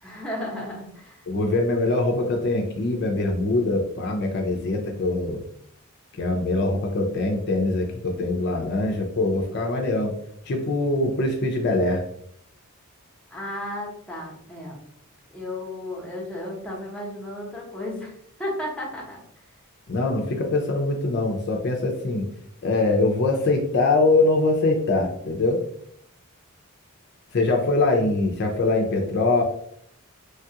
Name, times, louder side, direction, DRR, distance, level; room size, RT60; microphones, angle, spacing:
voice 1, 0.0-1.3 13.3-14.8 15.3-18.1 18.4-19.2, left 1 dB, 5° left, -3 dB, 0.7 m, -33 dB
voice 2, 1.3-5.4 6.2-10.1 10.5-12.0 19.9-22.2 22.6-25.6 27.3-29.4, left 2 dB, 50° left, 2 dB, 0.4 m, -23 dB
3.2 x 2.3 x 2.7 m, 0.69 s
head